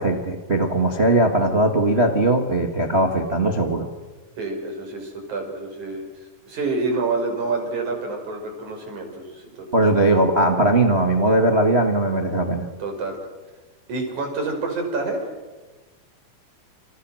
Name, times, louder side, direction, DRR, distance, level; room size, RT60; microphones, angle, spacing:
voice 1, 0.0-3.9 9.7-12.6, right 2 dB, 25° right, 4 dB, 1.4 m, -19 dB
voice 2, 4.4-6.0 6.5-9.8 12.8-13.2 13.9-15.2, right 3 dB, 55° right, 3 dB, 7.1 m, -28 dB
29.0 x 28.5 x 6.4 m, 1.2 s
omnidirectional pair, 4.1 m